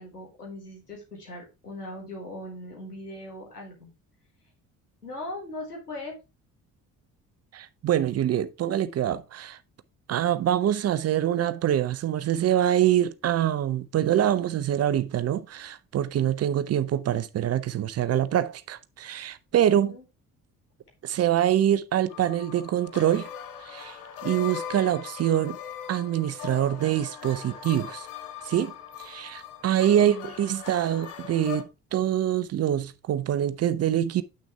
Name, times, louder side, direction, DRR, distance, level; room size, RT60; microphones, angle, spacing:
voice 1, 0.0-3.9 5.0-6.1 16.7-16.8 19.6-20.0 30.0-30.3, left 1 dB, 90° left, 1.6 m, -39 dB
voice 2, 7.5-9.6 10.1-20.0 21.0-23.3 23.6-24.0 24.2-25.6 25.9-28.1 28.5-34.2, right 11 dB, 35° right, 0.6 m, -25 dB
sound 1, 22.1-31.6, left 8 dB, 70° left, 1.0 m, -40 dB
7.9 x 6.0 x 3.3 m
figure-of-eight pair, 45°, 45 cm